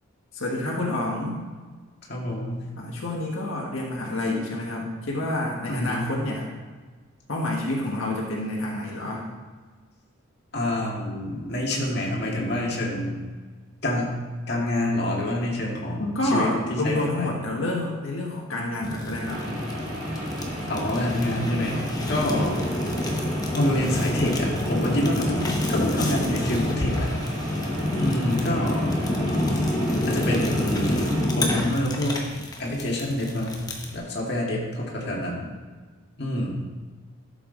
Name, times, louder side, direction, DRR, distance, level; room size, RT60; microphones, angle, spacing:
voice 1, 0.3-1.4 2.8-6.5 7.3-9.3 16.0-19.4, left 1 dB, 80° left, -3 dB, 1.6 m, -28 dB
voice 2, 2.1-2.7 5.7-6.1 10.5-13.2 13.8-14.2 14.5-17.3 20.7-22.6 23.5-27.1 28.0-29.0 30.1-32.2 32.6-33.7 33.9-35.5 36.2-36.6, left 1 dB, 50° left, -3 dB, 1.9 m, -27 dB
Fire, 18.8-34.0, left 1 dB, 20° left, 0.9 m, -28 dB
sound 1, 19.2-31.3, equal, 70° right, 2.1 m, -36 dB
12.0 x 7.1 x 3.9 m, 1.4 s
head